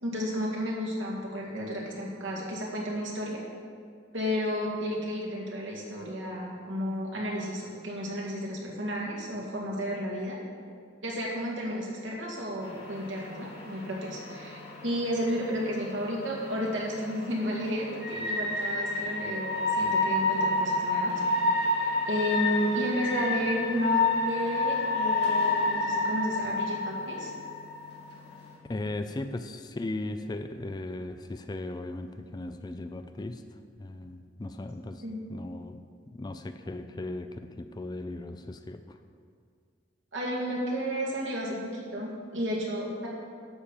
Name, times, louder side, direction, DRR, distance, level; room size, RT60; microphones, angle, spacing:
voice 1, 0.0-3.4 4.1-10.4 11.0-21.1 21.8-27.3 35.0-35.2 40.1-43.1, equal, 80° right, -3 dB, 2.2 m, -32 dB
sound 1, 12.6-28.5, left 2 dB, 55° left, 1.9 m, -30 dB
voice 2, 28.7-33.4 33.8-35.0 35.3-35.8 36.1-39.0, left 2 dB, 20° left, 8 dB, 0.4 m, -37 dB
11.5 x 4.4 x 7.1 m, 2.1 s
head